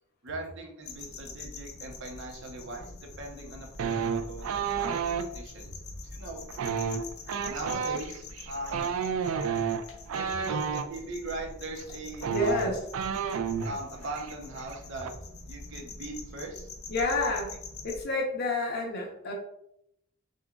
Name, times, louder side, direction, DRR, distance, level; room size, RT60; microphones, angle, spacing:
voice 1, 0.2-5.7 6.1-6.4 7.5-8.9 10.1-12.7 13.6-15.1 15.5-16.7, right 2 dB, 60° right, 2 dB, 0.9 m, -40 dB
sound 1, 0.8-18.0, left 3 dB, 85° left, 0.7 m, -45 dB
sound 2, 3.8-5.3 6.5-10.9 11.8-11.9 12.1-13.8 14.1-14.3 14.6-15.1, right 6 dB, 80° right, 0.4 m, -31 dB
voice 2, 12.3-12.8 16.9-17.6 17.8-19.3, left 2 dB, 50° left, -1 dB, 1.0 m, -29 dB
6.6 x 2.4 x 2.4 m, 0.78 s
head